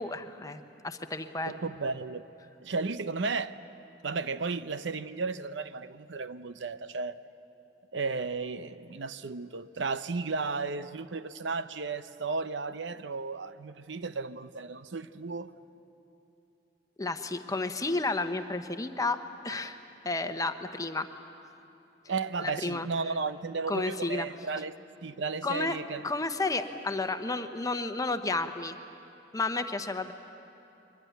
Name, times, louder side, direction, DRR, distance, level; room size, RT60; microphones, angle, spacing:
voice 1, 0.0-1.6 17.0-19.8 20.0-21.1 22.4-22.9 23.7-24.3 25.4-25.8 26.0-28.8 29.3-30.1, left 3 dB, 20° left, 8 dB, 1.0 m, -32 dB
voice 2, 1.5-2.3 2.6-3.6 4.0-7.2 7.9-15.5 22.1-24.7 25.0-26.1, right 4 dB, 85° right, 12 dB, 0.7 m, -34 dB
23.5 x 22.0 x 9.4 m, 2.8 s
head